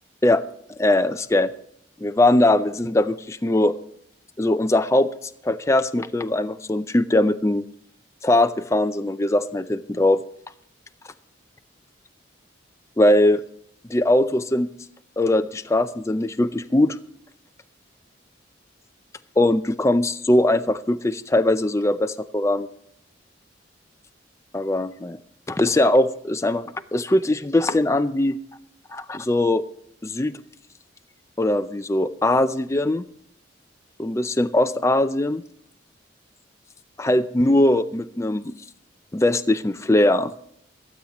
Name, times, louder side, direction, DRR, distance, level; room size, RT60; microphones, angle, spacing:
voice 1, 0.8-1.5 2.0-3.8 4.4-5.1 5.4-7.7 8.2-10.2 13.0-13.4 13.9-14.7 15.2-17.0 19.4-22.7 24.5-25.2 25.5-28.4 28.9-29.6 30.0-30.4 31.4-33.0 34.0-35.4 37.0-38.5 39.1-40.3, left 1 dB, 15° left, 10 dB, 0.4 m, -20 dB
25.5 x 8.7 x 3.0 m, 0.69 s
head